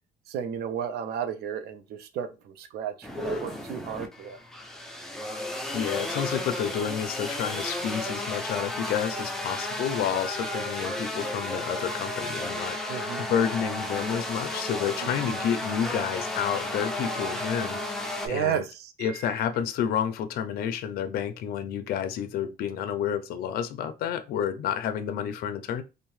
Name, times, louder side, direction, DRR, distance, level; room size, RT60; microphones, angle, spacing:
voice 1, 0.3-4.4 12.9-13.3 15.0-15.4 18.2-19.5, right 8 dB, 70° right, 0.5 m, -33 dB
sound 1, 3.0-18.3, left 1 dB, 5° left, 0.4 m, -33 dB
voice 2, 5.7-18.6 19.0-25.8, left 8 dB, 65° left, 0.4 m, -30 dB
2.6 x 2.1 x 3.1 m
cardioid pair, 110°, 17 cm